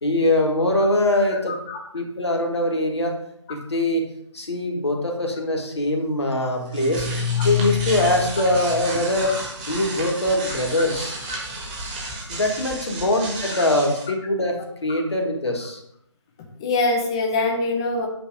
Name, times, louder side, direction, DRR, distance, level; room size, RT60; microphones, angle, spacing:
voice 1, 0.0-1.6 1.9-3.1 3.5-4.1 4.3-7.1 7.4-9.3 9.7-11.1 12.3-15.8, left 1 dB, 60° left, 2 dB, 1.7 m, -22 dB
voice 2, 1.5-1.8 9.3-9.4 11.3-11.4 16.6-18.1, left 2 dB, 10° left, 2 dB, 0.5 m, -24 dB
sound 1, 6.5-14.0, left 3 dB, 15° right, 1.1 m, -29 dB
8.7 x 2.9 x 4.9 m, 0.76 s
figure-of-eight pair, 155°, 16 cm